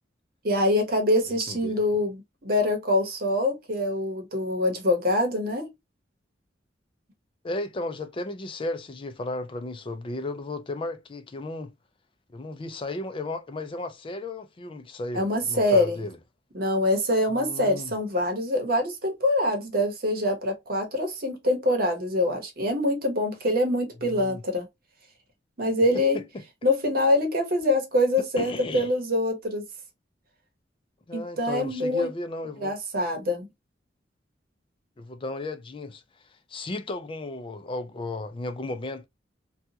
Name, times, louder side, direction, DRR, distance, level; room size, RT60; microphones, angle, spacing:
voice 1, 0.4-5.7 15.1-16.0 16.5-24.7 25.6-26.2 26.6-29.6 31.1-32.1 32.6-33.5, left 1 dB, 55° right, 0.9 m, -24 dB
voice 2, 1.5-1.8 7.4-11.7 12.3-16.2 17.3-17.9 24.0-24.4 26.1-26.2 28.4-28.9 31.1-32.7 35.0-36.0 36.5-39.1, left 2 dB, 30° left, 0.4 m, -34 dB
2.7 x 2.3 x 2.7 m
head